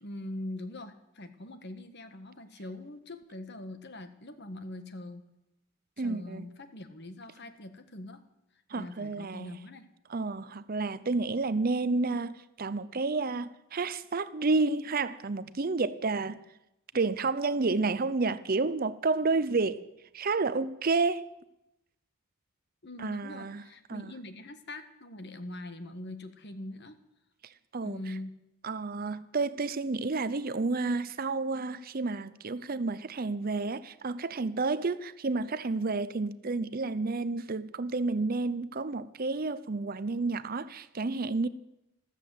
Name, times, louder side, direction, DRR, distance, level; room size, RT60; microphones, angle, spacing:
voice 1, 0.0-5.3 6.0-8.2 8.7-9.9 22.8-27.0 27.8-28.4, left 1 dB, 50° left, 1.3 m, -43 dB
voice 2, 6.0-6.4 8.7-9.5 10.1-16.4 16.9-19.8 20.1-21.3 23.0-23.6 23.9-24.1 27.7-28.0 28.6-41.5, right 3 dB, 40° right, 0.6 m, -30 dB
14.0 x 13.5 x 7.7 m
head